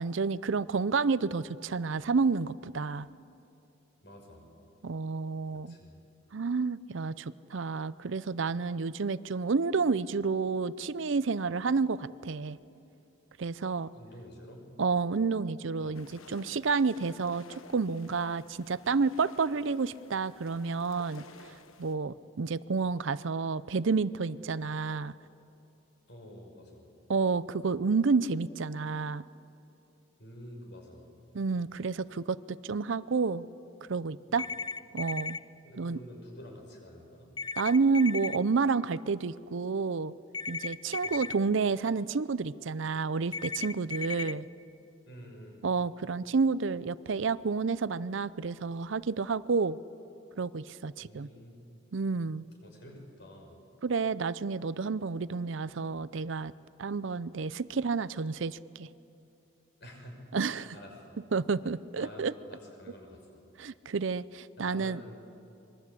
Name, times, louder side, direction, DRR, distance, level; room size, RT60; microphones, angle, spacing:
voice 1, 0.0-3.1 4.8-5.8 6.3-12.6 13.4-13.9 14.8-17.4 17.7-21.2 21.8-25.1 27.1-29.2 31.3-33.4 33.9-34.5 34.9-35.4 35.8-36.0 37.6-40.1 40.5-44.5 45.6-49.8 50.4-51.3 51.9-52.4 53.8-56.5 56.8-58.9 60.3-60.7 61.3-62.3 63.6-65.0, right 4 dB, 65° right, 17 dB, 0.5 m, -30 dB
voice 2, 4.0-4.5 5.5-6.0 13.9-14.7 15.8-16.1 26.1-26.8 30.2-31.1 34.3-34.5 35.6-37.3 41.0-41.2 45.1-45.6 51.0-51.7 52.6-53.6 59.8-60.2 60.4-61.2 62.0-63.3 64.6-65.2, equal, 55° left, 2 dB, 5.7 m, -49 dB
sound 1, 15.9-21.9, left 4 dB, 80° left, 1.3 m, -54 dB
sound 2, 34.4-35.4 37.4-38.4 40.3-41.3 43.3-44.3, left 5 dB, 20° left, 0.6 m, -36 dB
26.0 x 22.0 x 8.5 m, 2.8 s
head